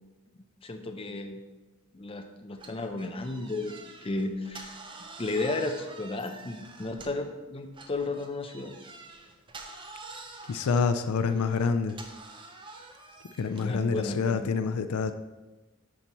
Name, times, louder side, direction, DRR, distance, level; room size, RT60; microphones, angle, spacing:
voice 1, 0.6-1.4 1.9-4.8 5.2-8.7 13.6-14.5, left 2 dB, 25° left, 5 dB, 0.5 m, -34 dB
sound 1, 2.6-7.3 7.7-13.8, right 3 dB, 20° right, 0.6 m, -47 dB
voice 2, 10.5-12.0 13.4-15.1, left 5 dB, 75° left, 10 dB, 0.4 m, -27 dB
9.8 x 5.4 x 3.0 m, 1.2 s
head